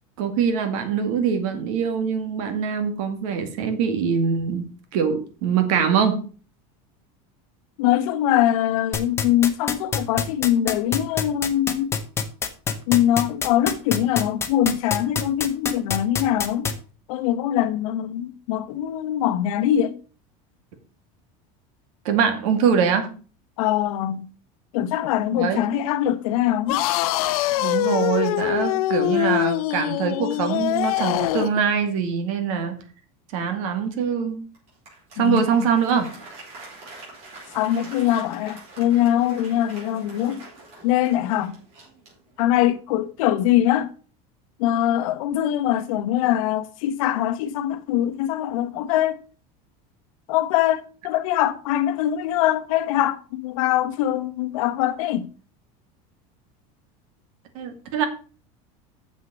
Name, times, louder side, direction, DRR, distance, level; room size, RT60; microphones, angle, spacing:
voice 1, 0.2-4.6 4.9-6.2 22.0-23.1 25.3-25.7 27.6-32.8 33.3-34.4 35.2-36.1 57.5-58.1, right 7 dB, 75° right, 2.3 m, -23 dB
voice 2, 7.8-11.9 12.9-16.7 17.1-19.9 23.6-24.3 24.7-26.8 35.2-35.7 37.5-40.4 40.8-41.5 42.4-43.9 44.6-49.2 50.3-55.3, left 12 dB, 75° left, 1.0 m, -22 dB
sound 1, 8.9-16.7, left 6 dB, 15° left, 0.8 m, -24 dB
sound 2, 26.7-31.6, left 16 dB, 90° left, 0.6 m, -23 dB
Applause, 34.5-42.7, right 2 dB, 35° right, 4.6 m, -44 dB
7.3 x 6.6 x 6.2 m
cardioid pair, 175°, 18 cm